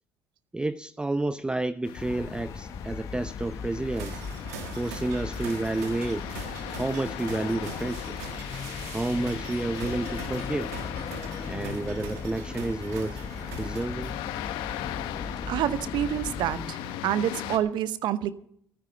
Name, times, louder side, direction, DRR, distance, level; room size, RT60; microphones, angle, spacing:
voice 1, 0.5-4.2 4.8-6.3 6.8-8.2 8.9-10.8 11.5-13.2 13.6-14.1, right 2 dB, 10° right, 15 dB, 0.4 m, -30 dB
sound 1, 1.8-17.6, left 11 dB, 75° left, 1.1 m, -39 dB
sound 2, 2.0-16.7, left 5 dB, 35° left, 1.0 m, -38 dB
sound 3, 3.9-14.3, right 8 dB, 90° right, 1.4 m, -43 dB
voice 2, 15.5-18.3, right 11 dB, 65° right, 15 dB, 0.8 m, -28 dB
13.5 x 9.5 x 6.9 m, 0.69 s
hypercardioid pair, 65°, 8 cm